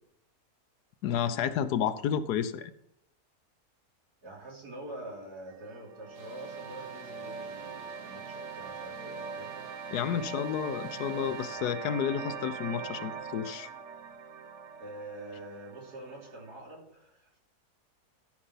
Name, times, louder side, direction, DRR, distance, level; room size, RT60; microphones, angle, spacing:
voice 1, 1.0-2.7 9.9-13.7, left 8 dB, 90° left, 12 dB, 1.3 m, -31 dB
voice 2, 4.2-9.7 14.8-17.4, right 1 dB, 80° right, -3 dB, 3.9 m, -45 dB
sound 1, 5.5-16.5, right 6 dB, 55° right, 0.9 m, -42 dB
sound 2, 6.1-11.6, right 2 dB, 40° right, 1.8 m, -56 dB
13.5 x 5.7 x 5.6 m, 0.78 s
omnidirectional pair, 1.6 m